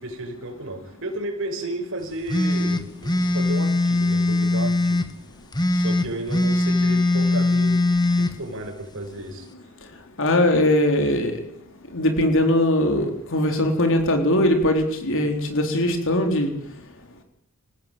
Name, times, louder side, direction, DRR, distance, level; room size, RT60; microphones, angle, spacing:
voice 1, 0.0-5.1 5.7-7.8 8.2-9.5, right 2 dB, 65° right, 3 dB, 6.1 m, -33 dB
sound 1, 2.3-5.1 5.5-8.3, left 2 dB, 20° left, 2.0 m, -21 dB
voice 2, 10.2-11.4 11.9-16.5, left 1 dB, 60° left, 4 dB, 3.9 m, -20 dB
28.0 x 18.5 x 9.1 m, 0.74 s
head